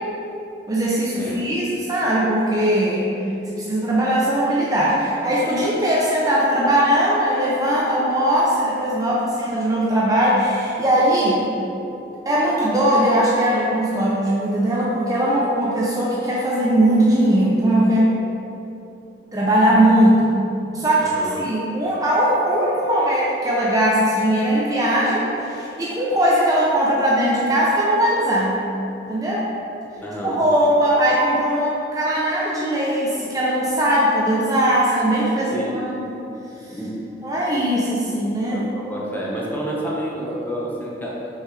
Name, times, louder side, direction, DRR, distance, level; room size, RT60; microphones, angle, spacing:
voice 1, 0.7-3.1 3.6-11.4 12.3-18.1 19.3-20.4 20.7-28.6 29.1-29.5 30.2-35.9 37.2-38.7, right 1 dB, 20° right, -6 dB, 0.6 m, -19 dB
voice 2, 21.0-21.5 30.0-30.4 35.5-35.8 36.7-36.9 38.5-41.3, right 1 dB, 10° left, -5 dB, 0.9 m, -29 dB
6.0 x 5.5 x 3.3 m, 2.9 s
head